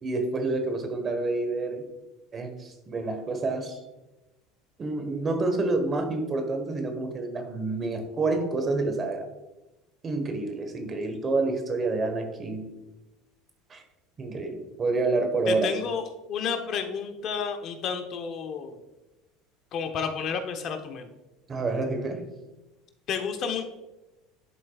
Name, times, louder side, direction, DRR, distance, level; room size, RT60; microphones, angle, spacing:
voice 1, 0.0-1.8 2.3-3.8 4.8-9.3 10.0-12.7 13.7-13.8 14.2-15.7 21.5-22.4, right 3 dB, 35° right, 6 dB, 1.3 m, -28 dB
voice 2, 15.5-18.8 19.7-21.1 23.1-23.6, left 6 dB, 50° left, 6 dB, 0.9 m, -31 dB
11.0 x 4.4 x 2.4 m, 1.0 s
hypercardioid pair, 85°, 0 cm